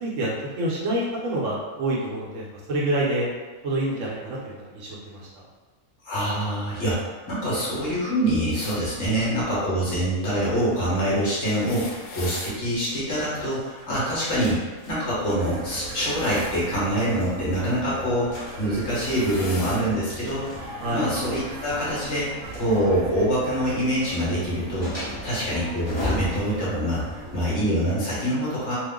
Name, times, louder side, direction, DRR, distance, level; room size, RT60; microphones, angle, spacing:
voice 1, 0.0-3.3 3.6-5.4 20.8-21.1, right 1 dB, 70° right, -5 dB, 1.0 m, -27 dB
voice 2, 6.0-28.8, equal, 55° left, -8 dB, 1.3 m, -25 dB
sound 1, 8.5-8.8 11.4-12.6 15.8-16.5 17.9-18.1 18.7-19.8 20.9-21.0 22.2-22.3, left 2 dB, 90° left, 1.2 m, -39 dB
sound 2, 10.6-27.5, left 1 dB, 25° left, 0.6 m, -40 dB
sound 3, 15.3-27.7, right 2 dB, 85° right, 1.1 m, -39 dB
2.9 x 2.0 x 3.6 m, 1.4 s
omnidirectional pair, 1.5 m